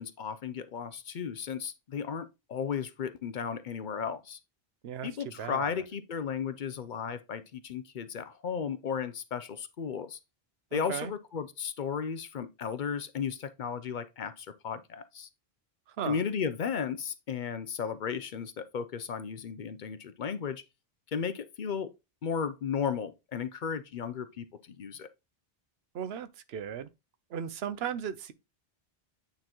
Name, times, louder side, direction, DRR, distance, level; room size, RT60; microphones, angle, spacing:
voice 1, 0.0-4.4 5.0-10.2 10.7-15.3 16.1-20.6 21.1-21.9 22.2-25.1, left 7 dB, 55° left, 0.7 m, -35 dB
voice 2, 5.4-5.7 10.7-11.1 15.9-16.2 25.9-26.9 27.3-28.3, right 8 dB, 80° right, 0.9 m, -36 dB
8.8 x 3.9 x 3.0 m
omnidirectional pair, 1.0 m